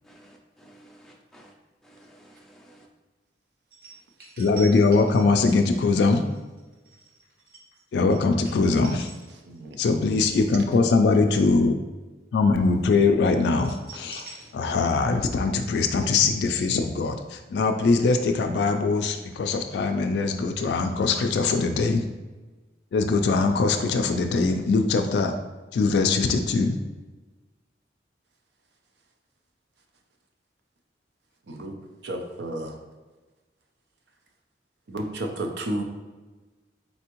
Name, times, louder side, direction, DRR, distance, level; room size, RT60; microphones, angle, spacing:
voice 1, 0.1-1.5 1.8-2.8, right 1 dB, 5° left, -1 dB, 0.5 m, -53 dB
sound 1, 3.7-9.8 10.1-10.4 13.5-15.1 15.3-15.4, right 4 dB, 60° right, 1.2 m, -45 dB
voice 2, 4.4-6.2 7.9-9.1 9.8-11.8 12.3-14.2 14.5-22.0 22.9-25.3 25.7-26.7, left 4 dB, 70° left, 6 dB, 0.3 m, -22 dB
voice 3, 9.5-9.8 31.5-32.8 34.9-35.8, right 1 dB, 75° right, 3 dB, 0.6 m, -32 dB
4.1 x 3.4 x 3.0 m, 1.2 s
head